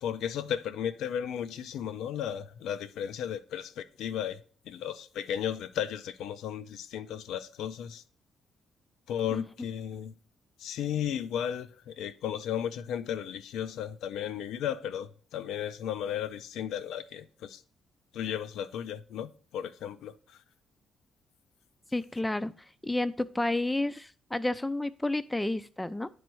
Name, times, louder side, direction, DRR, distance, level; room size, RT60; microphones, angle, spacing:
voice 1, 0.0-4.4 4.7-8.0 9.1-10.1 10.6-17.6 18.1-20.1, left 9 dB, 85° left, 0.4 m, -34 dB
voice 2, 21.9-22.5 22.8-26.1, left 2 dB, 10° left, 0.4 m, -30 dB
9.3 x 3.1 x 4.5 m
cardioid pair, 90°, 0 cm